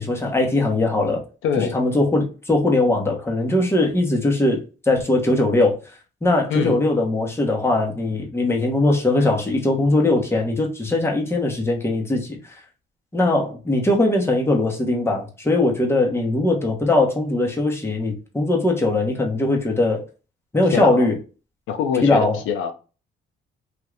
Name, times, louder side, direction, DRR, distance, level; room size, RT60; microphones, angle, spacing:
voice 1, 0.0-1.2 1.6-4.6 4.8-5.8 6.2-12.4 13.1-20.0 20.5-21.1 22.0-22.4, left 2 dB, 10° left, 1.0 m, -20 dB
voice 2, 1.4-1.8 6.5-6.8 20.7-21.1 21.7-22.7, left 7 dB, 85° left, 0.5 m, -24 dB
2.6 x 2.5 x 3.2 m
cardioid pair, 90°, 20 cm